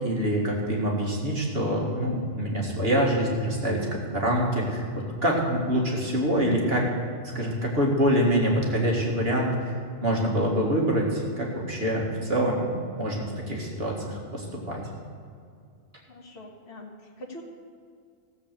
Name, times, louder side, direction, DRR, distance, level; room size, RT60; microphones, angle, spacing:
voice 1, 0.0-3.9 4.1-4.8 5.2-6.8 7.2-9.7 10.0-14.8, equal, 55° right, -2 dB, 2.2 m, -25 dB
voice 2, 16.1-17.4, left 1 dB, 60° left, -1 dB, 1.8 m, -43 dB
15.0 x 7.7 x 6.7 m, 2.3 s
omnidirectional pair, 1.2 m